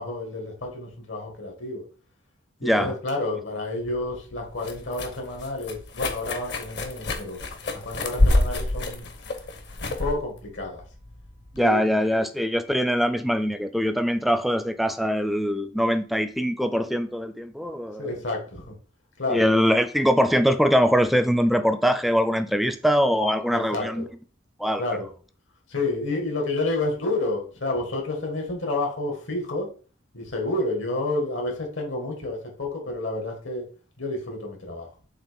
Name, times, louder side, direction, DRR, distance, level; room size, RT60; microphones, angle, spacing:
voice 1, 0.0-1.8 2.6-7.4 7.7-9.0 9.9-10.8 11.6-12.0 18.0-18.8 19.2-19.5 23.5-24.1 24.8-25.1 25.7-29.7 30.1-33.7 34.0-34.9, left 2 dB, 75° left, 2.1 m, -30 dB
voice 2, 2.6-2.9 11.5-18.0 19.3-24.1 24.6-24.8, equal, ahead, 0.5 m, -22 dB
sound 1, 3.8-11.6, left 2 dB, 60° left, 1.0 m, -28 dB
7.4 x 2.9 x 5.3 m
head